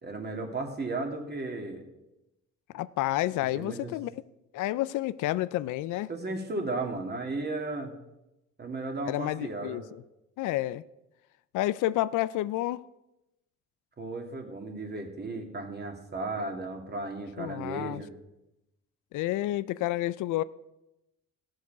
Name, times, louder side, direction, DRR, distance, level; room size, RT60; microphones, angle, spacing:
voice 1, 0.0-1.8 3.4-3.9 6.1-7.9 8.6-9.8 14.0-18.1, right 2 dB, 35° right, 2.2 m, -35 dB
voice 2, 2.7-4.1 4.5-6.1 9.1-10.0 10.4-10.8 11.5-12.8 17.4-18.0 19.1-20.4, left 15 dB, 85° left, 0.5 m, -30 dB
14.5 x 6.5 x 5.8 m
cardioid pair, 90°, 30 cm